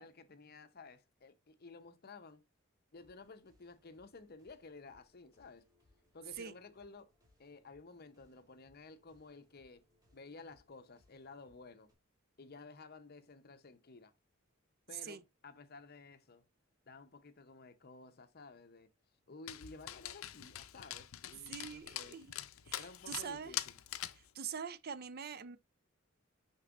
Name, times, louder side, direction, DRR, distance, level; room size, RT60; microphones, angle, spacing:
voice 1, 0.0-2.4 2.9-5.7 6.1-7.1 7.4-9.8 10.1-11.9 12.4-14.1 14.9-16.4 16.9-18.9 19.3-22.2 22.7-23.8, left 3 dB, 50° left, 0.8 m, -54 dB
sound 1, 2.9-11.9, left 1 dB, 20° right, 2.9 m, -73 dB
Dog, 19.5-24.3, left 13 dB, 80° left, 0.5 m, -44 dB
voice 2, 21.4-22.3 22.7-23.6 24.1-25.6, right 7 dB, 50° right, 0.5 m, -44 dB
6.5 x 6.1 x 2.5 m
head